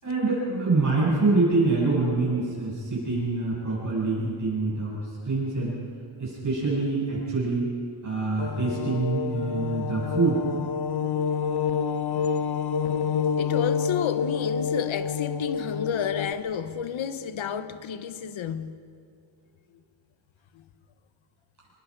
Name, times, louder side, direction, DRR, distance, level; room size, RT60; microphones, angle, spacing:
voice 1, 0.0-5.0 5.2-5.7 6.2-7.7 8.0-10.4, right 3 dB, 40° right, 8.0 m, -25 dB
sound 1, 8.4-16.3, left 6 dB, 55° left, 0.8 m, -28 dB
voice 2, 13.4-18.8, left 8 dB, 75° left, 1.0 m, -31 dB
28.0 x 20.5 x 5.1 m
wide cardioid pair, 170°, 47 cm